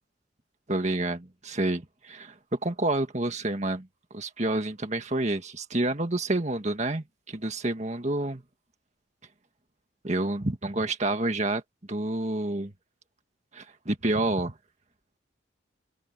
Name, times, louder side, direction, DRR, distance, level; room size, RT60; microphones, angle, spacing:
voice 1, 0.7-8.4 10.0-11.6 11.9-12.7 13.5-14.5, right 2 dB, 35° right, 1.7 m, -29 dB
open air
head